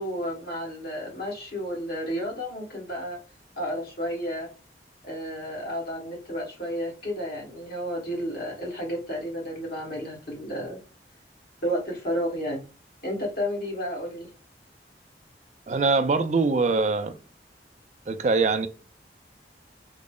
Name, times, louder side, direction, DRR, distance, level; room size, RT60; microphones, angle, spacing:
voice 1, 0.0-3.2 3.6-4.5 5.0-10.8 11.6-12.6 13.0-14.3, equal, 55° left, 1.5 m, -32 dB
voice 2, 15.7-17.2 18.1-18.7, right 4 dB, 40° right, 0.3 m, -23 dB
3.9 x 2.0 x 3.6 m
head